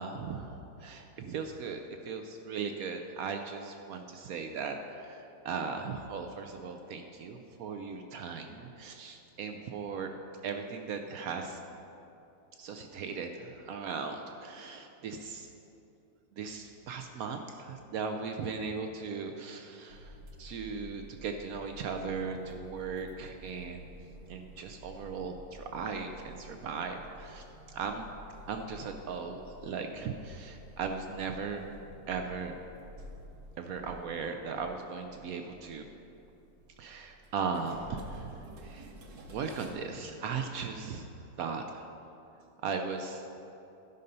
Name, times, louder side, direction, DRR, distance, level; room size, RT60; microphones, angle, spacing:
voice 1, 0.0-10.1 10.4-11.6 12.6-15.5 16.3-23.9 24.3-28.1 28.5-31.6 32.1-32.5 33.6-35.8 36.8-38.9 39.3-41.1 41.4-41.8 42.6-43.3, right 5 dB, 80° right, 5 dB, 0.8 m, -38 dB
sound 1, 19.9-39.7, equal, 60° right, 1.3 m, -51 dB
12.5 x 5.5 x 5.3 m, 2.8 s
omnidirectional pair, 2.1 m